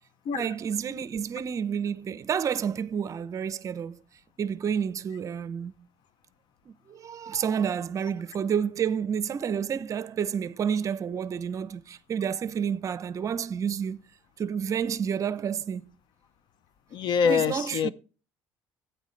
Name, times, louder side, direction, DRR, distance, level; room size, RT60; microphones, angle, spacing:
voice 1, 0.3-4.0 4.4-5.7 6.7-14.0 14.4-15.8 17.2-17.9, right 7 dB, 35° right, 0.6 m, -30 dB
voice 2, 16.9-17.9, left 7 dB, 55° left, 0.6 m, -25 dB
12.5 x 9.0 x 3.2 m
cardioid pair, 140°, 9 cm